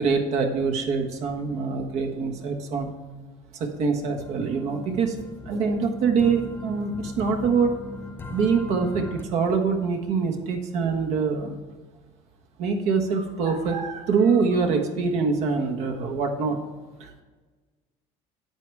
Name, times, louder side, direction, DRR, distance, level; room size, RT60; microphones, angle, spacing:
voice 1, 0.0-2.9 3.5-5.1 5.4-7.7 8.3-11.6 12.6-16.6 17.0-17.2, right 5 dB, 50° right, 4 dB, 1.4 m, -24 dB
sound 1, 3.6-9.2, left 2 dB, 15° left, 0.5 m, -39 dB
9.1 x 8.9 x 3.5 m, 1.3 s
cardioid pair, 160°, 14 cm